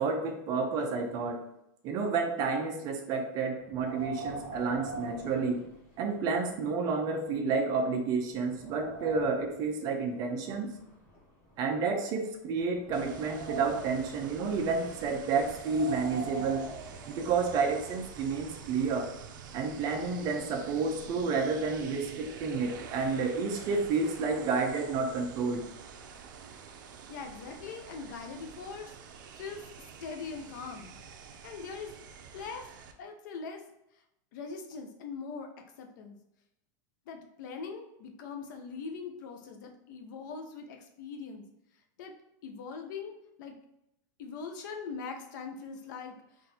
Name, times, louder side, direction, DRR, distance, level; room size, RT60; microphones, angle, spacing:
voice 1, 0.0-1.4 1.8-5.6 6.0-10.7 11.6-16.7 17.1-19.1 19.5-25.6, right 4 dB, 35° right, 4 dB, 0.6 m, -30 dB
Wind, 3.6-6.2 6.6-6.7 7.4-7.5 8.0-9.6 10.4-12.0 12.5-14.1 15.4-17.5, right 3 dB, 45° left, 1.4 m, -43 dB
sound 1, 12.9-32.9, right 6 dB, 75° right, 0.6 m, -47 dB
voice 2, 27.1-29.7 30.0-31.0 31.4-32.0 32.3-32.7 33.0-33.6 34.3-36.2 37.1-41.5 42.0-42.1 42.4-43.6 44.2-46.2, left 5 dB, 70° left, 4 dB, 0.7 m, -41 dB
3.7 x 2.6 x 4.2 m, 0.83 s
supercardioid pair, 150°, 11 cm